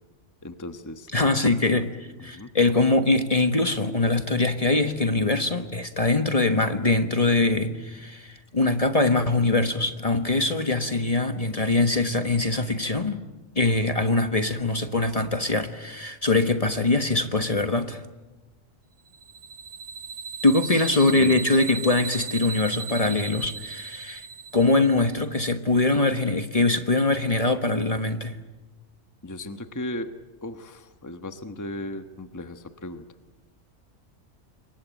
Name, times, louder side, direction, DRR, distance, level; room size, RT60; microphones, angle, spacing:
voice 1, 0.4-1.5 2.3-2.5 20.6-21.4 29.2-30.1 30.4-33.0, left 1 dB, 15° left, 8 dB, 1.2 m, -36 dB
voice 2, 1.1-13.2 13.5-18.0 20.4-24.3 24.5-28.4, left 2 dB, 30° left, 8 dB, 1.4 m, -23 dB
sound 1, 19.1-25.1, right 5 dB, 75° right, 1.7 m, -36 dB
28.0 x 23.0 x 9.2 m, 1.1 s
omnidirectional pair, 1.2 m